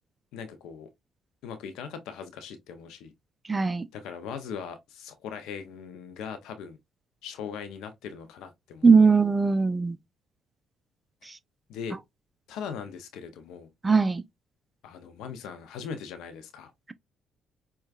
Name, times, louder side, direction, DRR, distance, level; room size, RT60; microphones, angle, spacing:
voice 1, 0.3-0.9 1.4-3.1 3.9-6.8 7.2-8.9 11.7-12.0 12.5-13.7 14.8-16.7, left 7 dB, 75° left, 0.5 m, -39 dB
voice 2, 3.5-3.8 8.8-10.0 13.8-14.2, right 4 dB, 25° right, 0.4 m, -20 dB
4.6 x 2.2 x 2.4 m
hypercardioid pair, 55°, 0 cm